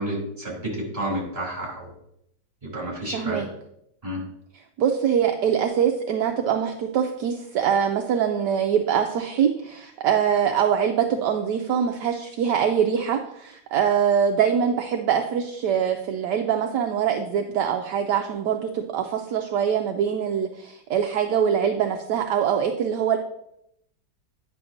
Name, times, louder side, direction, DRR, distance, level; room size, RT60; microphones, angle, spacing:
voice 1, 0.0-1.9 2.6-3.4 4.0-4.2, right 1 dB, 20° right, -3 dB, 2.8 m, -30 dB
voice 2, 3.1-3.5 4.8-23.2, right 8 dB, 75° right, 4 dB, 1.1 m, -23 dB
9.8 x 6.0 x 2.6 m, 0.76 s
omnidirectional pair, 2.1 m